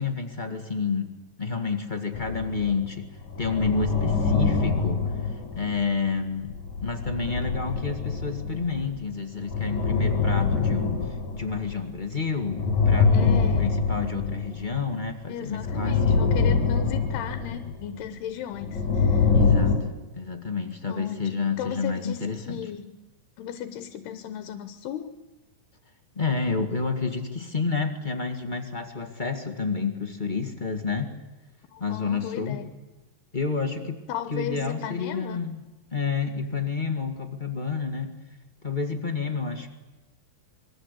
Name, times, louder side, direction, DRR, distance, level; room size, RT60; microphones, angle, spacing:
voice 1, 0.0-3.1 3.4-5.0 5.5-11.0 11.3-16.2 19.3-19.9 20.1-22.6 26.1-31.1 31.8-32.6 33.3-34.0 34.3-35.6 35.9-38.1 38.6-39.7, left 5 dB, 25° left, 3 dB, 0.9 m, -29 dB
sound 1, 2.1-2.9 3.2-6.0 6.5-9.0 9.4-12.0 12.4-15.0 15.5-18.0 18.5-19.8, left 4 dB, 45° left, 5.6 m, -25 dB
voice 2, 13.0-13.8 15.3-19.3 20.9-22.9 23.4-25.1 31.7-32.6 34.1-35.4, left 9 dB, 80° left, 10 dB, 3.1 m, -36 dB
27.0 x 22.5 x 8.5 m, 1.1 s
omnidirectional pair, 4.6 m